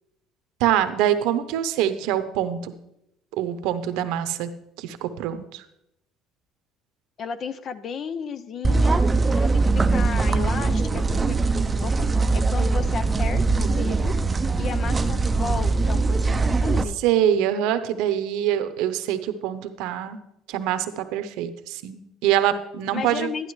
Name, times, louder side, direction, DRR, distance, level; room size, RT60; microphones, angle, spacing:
voice 1, 0.6-2.7 3.4-4.5 4.8-5.6 17.0-20.2 20.5-23.3, right 11 dB, 80° right, 11 dB, 0.8 m, -24 dB
voice 2, 7.2-9.0 9.3-11.4 11.8-12.1 12.3-14.1 14.6-17.0 22.9-23.5, left 6 dB, 50° left, 12 dB, 0.6 m, -33 dB
sound 1, 8.6-16.8, right 3 dB, 25° right, 0.5 m, -21 dB
11.5 x 11.5 x 3.2 m, 0.83 s
supercardioid pair, 85°, 0 cm